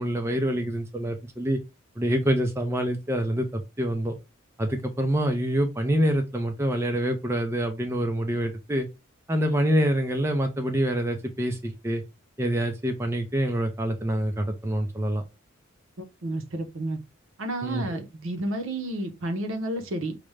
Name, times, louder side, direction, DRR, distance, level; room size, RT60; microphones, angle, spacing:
voice 1, 0.0-1.6 2.0-4.1 4.6-8.9 9.3-12.0 12.4-15.2 17.6-18.0, right 1 dB, 10° right, 0.4 m, -26 dB
voice 2, 16.2-17.0 17.4-20.1, right 1 dB, 70° right, 0.7 m, -31 dB
4.9 x 2.1 x 3.2 m
head